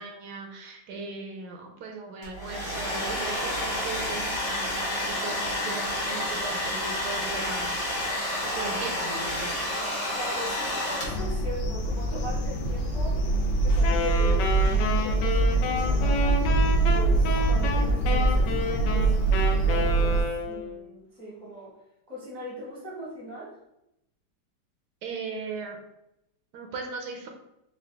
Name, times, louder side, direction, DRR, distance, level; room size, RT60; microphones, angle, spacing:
voice 1, 0.0-8.1 8.4-9.7 25.0-25.8 26.5-27.3, right 4 dB, 75° right, 2 dB, 1.1 m, -38 dB
Domestic sounds home sounds, 2.2-11.4, left 1 dB, 35° left, 0.8 m, -30 dB
voice 2, 10.1-13.2 13.6-16.4 16.9-19.1 19.5-21.7 22.1-23.6, equal, 5° left, -5 dB, 0.7 m, -39 dB
sound 1, 11.0-20.2, right 3 dB, 65° left, 0.7 m, -24 dB
Wind instrument woodwind instrument, 13.8-20.8, left 4 dB, 80° left, 1.2 m, -30 dB
3.9 x 2.5 x 3.3 m, 0.83 s
omnidirectional pair, 1.9 m